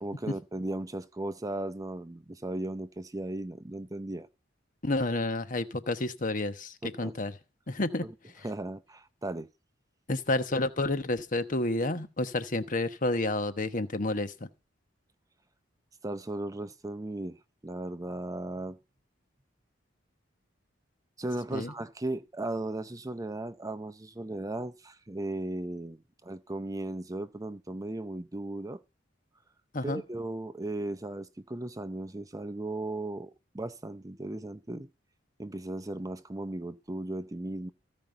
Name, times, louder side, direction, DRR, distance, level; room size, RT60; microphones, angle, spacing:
voice 1, 0.0-4.3 6.8-7.1 8.4-9.5 16.0-17.4 17.6-18.8 21.2-28.8 29.8-34.9 35.4-37.7, right 1 dB, 20° right, 0.6 m, -36 dB
voice 2, 4.8-7.3 7.7-8.1 8.3-8.5 10.1-14.3 21.5-21.7 29.7-30.0, left 2 dB, 45° left, 1.1 m, -30 dB
15.5 x 5.4 x 8.9 m
head